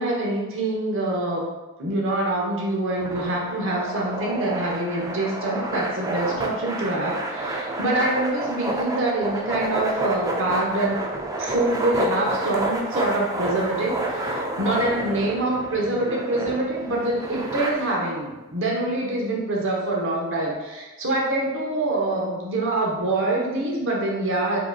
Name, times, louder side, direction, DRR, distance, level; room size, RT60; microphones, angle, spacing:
voice 1, 0.0-1.5 1.8-11.0 11.4-24.6, right 2 dB, 65° right, -3 dB, 0.9 m, -25 dB
sound 1, 3.0-17.7, right 1 dB, 15° right, 0.4 m, -29 dB
4.8 x 2.9 x 2.3 m, 1.2 s
head